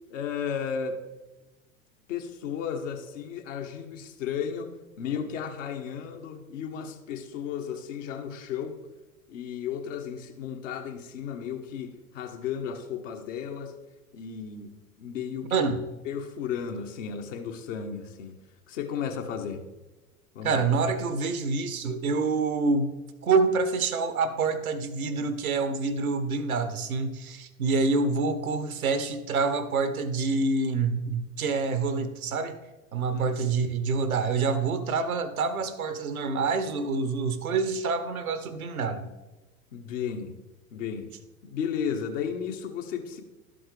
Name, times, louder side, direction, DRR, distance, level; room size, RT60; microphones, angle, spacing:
voice 1, 0.1-1.0 2.1-4.7 5.0-8.8 9.3-13.7 14.1-15.7 16.0-18.4 18.7-19.6 20.3-20.7 33.1-33.3 39.7-40.4 40.7-41.1 41.4-43.2, left 7 dB, 60° left, 4 dB, 1.3 m, -34 dB
voice 2, 15.5-15.8 20.4-22.9 23.2-32.6 32.9-39.1, right 4 dB, 75° right, 11 dB, 1.0 m, -27 dB
12.0 x 7.7 x 3.3 m, 1.1 s
figure-of-eight pair, 80°, 42 cm